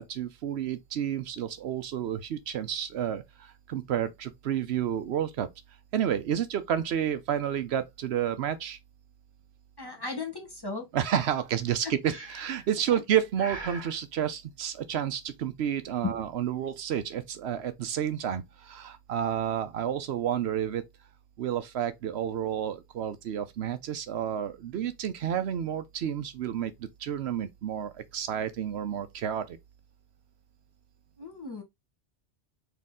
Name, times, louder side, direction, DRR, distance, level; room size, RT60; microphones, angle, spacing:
voice 1, 0.0-5.5 5.9-8.8 10.9-20.8 21.4-29.6, right 9 dB, 70° right, 0.9 m, -30 dB
voice 2, 9.8-10.8 16.0-16.1 31.2-31.6, left 4 dB, 20° left, 1.2 m, -35 dB
Breathing, 12.1-12.7 13.4-14.0, right 3 dB, 25° right, 1.1 m, -41 dB
4.2 x 3.0 x 3.6 m
omnidirectional pair, 1.1 m